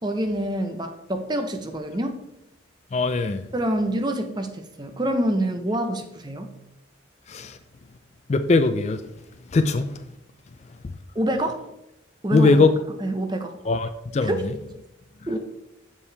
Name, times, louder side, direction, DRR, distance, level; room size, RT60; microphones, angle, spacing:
voice 1, 0.0-2.2 3.5-6.5 11.1-11.6 12.2-12.6 13.0-13.6 14.2-14.4 15.3-15.4, right 1 dB, 20° right, 0.7 m, -26 dB
voice 2, 2.9-3.4 7.3-7.6 8.3-9.0 9.5-10.0 12.3-12.7 13.7-14.3, left 3 dB, 35° left, 0.3 m, -20 dB
7.3 x 7.0 x 3.3 m
head